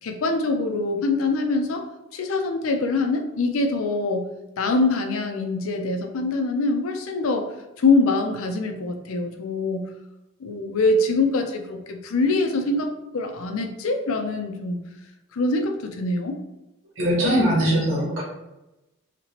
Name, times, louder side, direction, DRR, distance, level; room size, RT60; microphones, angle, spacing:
voice 1, 0.0-1.8 2.1-4.3 4.6-7.5 7.8-9.9 10.4-12.9 13.1-14.8 15.3-16.3, left 3 dB, 75° left, 5 dB, 0.5 m, -24 dB
voice 2, 17.0-18.2, equal, 65° right, -5 dB, 1.2 m, -21 dB
2.9 x 2.9 x 2.9 m, 0.97 s
head